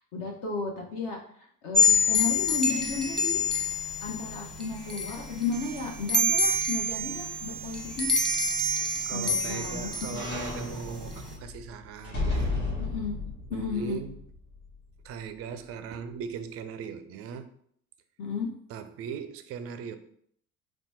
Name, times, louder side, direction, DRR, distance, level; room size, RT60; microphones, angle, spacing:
voice 1, 0.0-3.4 4.0-8.1 9.1-10.2 12.8-13.1 13.5-14.0 18.2-18.5, left 4 dB, 45° left, 0.9 m, -33 dB
sound 1, 1.7-11.3, left 2 dB, ahead, 0.9 m, -27 dB
sound 2, 8.5-14.8 15.2-15.3, left 2 dB, 70° left, 1.4 m, -35 dB
voice 2, 9.0-12.6 13.5-14.1 15.0-17.5 18.7-20.0, right 7 dB, 35° right, 0.4 m, -39 dB
4.1 x 2.2 x 4.3 m
figure-of-eight pair, 60°, 44 cm